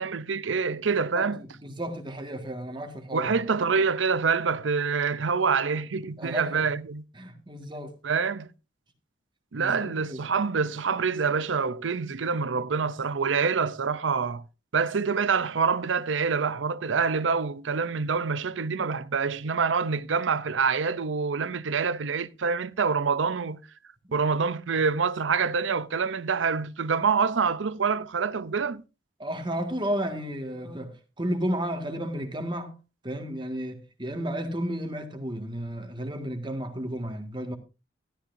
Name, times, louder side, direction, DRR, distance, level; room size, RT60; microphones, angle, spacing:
voice 1, 0.0-1.4 3.1-7.0 8.0-8.5 9.5-14.4 14.7-23.6 24.1-28.8, right 5 dB, 90° right, 0.6 m, -26 dB
voice 2, 1.1-3.4 6.2-6.7 7.2-8.0 9.6-10.2 29.2-32.8 33.0-37.6, equal, 25° right, 1.9 m, -33 dB
13.0 x 12.5 x 2.7 m
head